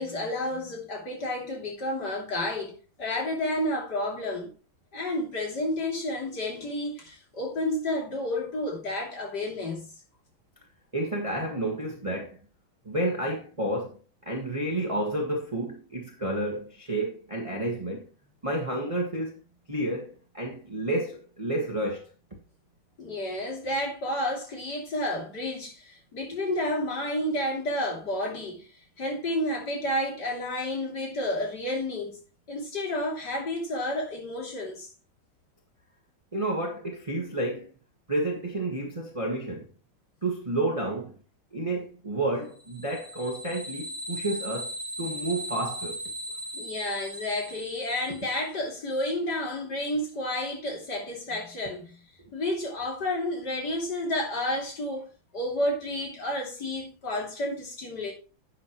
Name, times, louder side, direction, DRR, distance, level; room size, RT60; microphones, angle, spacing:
voice 1, 0.0-4.5 4.9-9.9 23.0-28.7 29.0-32.2 32.5-34.9 46.5-52.1 52.3-55.1 55.3-58.1, left 1 dB, 50° left, 3.6 m, -31 dB
voice 2, 10.9-12.4 12.8-14.0 14.2-18.1 18.4-19.4 19.7-22.0 36.3-37.7 38.1-39.7 40.2-41.2 41.5-46.0, right 1 dB, 15° right, 1.5 m, -30 dB
sound 1, 42.6-48.5, right 1 dB, 30° left, 2.7 m, -38 dB
11.0 x 8.7 x 3.1 m
omnidirectional pair, 2.3 m